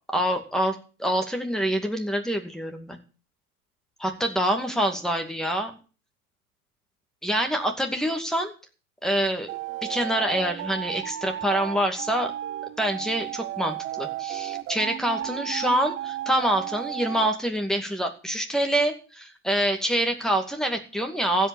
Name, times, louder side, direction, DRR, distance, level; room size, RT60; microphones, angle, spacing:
voice 1, 0.1-3.0 4.0-5.7 7.2-8.5 9.0-9.5 9.8-12.3 12.8-21.5, right 1 dB, ahead, 5 dB, 2.3 m, -26 dB
sound 1, 9.5-17.3, right 13 dB, 25° right, 0.8 m, -33 dB
15.5 x 5.6 x 8.7 m, 0.37 s
hypercardioid pair, 115°, 44 cm